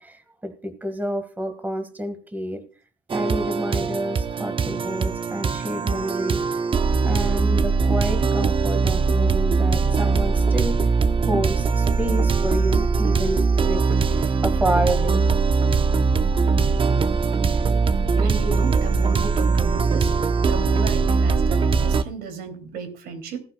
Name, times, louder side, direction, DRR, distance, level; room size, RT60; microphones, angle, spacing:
voice 1, 0.0-2.6 3.1-6.4 7.1-10.8 11.3-15.2, equal, 10° right, 8 dB, 1.9 m, -29 dB
sound 1, 3.1-22.0, right 4 dB, 30° right, 0.8 m, -21 dB
voice 2, 18.2-20.1 20.4-23.4, right 5 dB, 70° right, 7 dB, 3.1 m, -33 dB
17.5 x 11.0 x 2.3 m, 0.38 s
cardioid pair, 110°, 17 cm